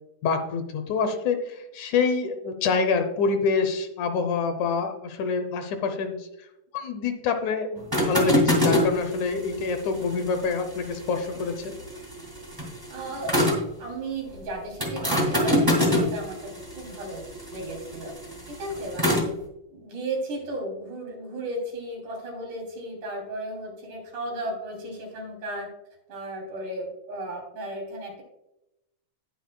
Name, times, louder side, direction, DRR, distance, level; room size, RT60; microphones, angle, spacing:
voice 1, 0.2-6.3 6.7-11.7, left 5 dB, 75° left, 7 dB, 2.2 m, -26 dB
sound 1, 7.8-13.7 14.8-19.3, left 1 dB, 10° right, 1.3 m, -26 dB
voice 2, 12.9-13.3 13.8-16.5 16.8-17.2 17.5-18.2 18.5-19.2 19.7-25.7 26.1-28.2, right 1 dB, 70° right, 0 dB, 4.5 m, -35 dB
19.0 x 6.3 x 2.2 m, 0.89 s
omnidirectional pair, 3.7 m